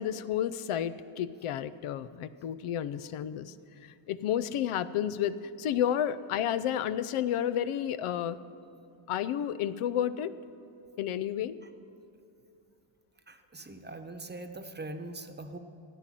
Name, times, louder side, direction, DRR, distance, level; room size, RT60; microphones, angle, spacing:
voice 1, 0.0-3.5 3.8-8.4 9.1-10.3 11.0-11.6, left 10 dB, 85° left, 14 dB, 0.6 m, -31 dB
voice 2, 13.3-15.6, right 2 dB, 20° right, 7 dB, 0.9 m, -42 dB
14.5 x 9.2 x 7.5 m, 2.6 s
cardioid pair, 90°, 49 cm